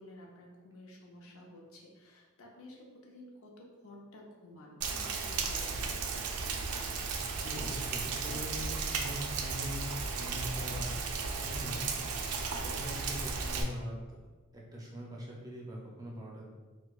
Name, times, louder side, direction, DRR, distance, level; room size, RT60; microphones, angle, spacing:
voice 1, 0.0-6.2, left 1 dB, 70° left, -1 dB, 0.6 m, -52 dB
Rain, 4.8-13.6, right 4 dB, 90° right, 0.4 m, -35 dB
voice 2, 7.3-9.8 10.1-10.9 11.4-11.9 12.6-14.0 14.5-16.5, equal, 15° right, -3 dB, 0.5 m, -42 dB
4.4 x 2.2 x 2.3 m, 1.3 s
head